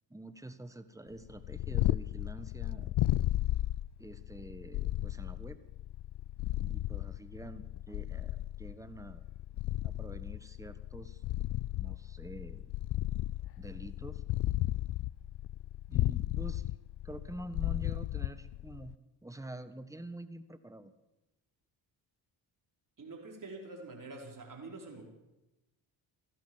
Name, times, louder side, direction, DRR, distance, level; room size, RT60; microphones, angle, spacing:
voice 1, 0.1-2.9 4.0-5.6 6.6-9.3 9.8-11.2 11.8-12.7 13.6-14.2 15.9-16.7 17.0-19.0 19.2-20.9, right 1 dB, 5° right, 11 dB, 1.5 m, -47 dB
Purr, 1.2-18.9, left 15 dB, 55° left, 0.5 m, -34 dB
voice 2, 23.0-25.1, right 3 dB, 40° right, 0 dB, 4.9 m, -46 dB
15.0 x 12.0 x 7.3 m, 1.0 s
supercardioid pair, 50°, 48 cm